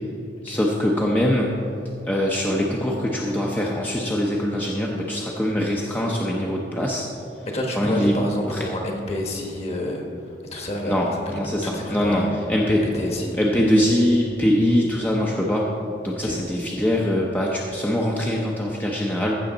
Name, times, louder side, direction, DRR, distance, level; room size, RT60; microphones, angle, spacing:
voice 1, 0.4-1.6 2.1-7.1 7.8-8.2 8.5-8.7 10.8-12.2 12.5-12.8 13.4-15.7 16.0-19.4, equal, 10° left, -3 dB, 0.7 m, -22 dB
voice 2, 7.4-12.3 12.9-13.4 16.2-16.4, left 1 dB, 35° left, 1 dB, 1.4 m, -29 dB
14.5 x 6.4 x 3.9 m, 2.7 s
head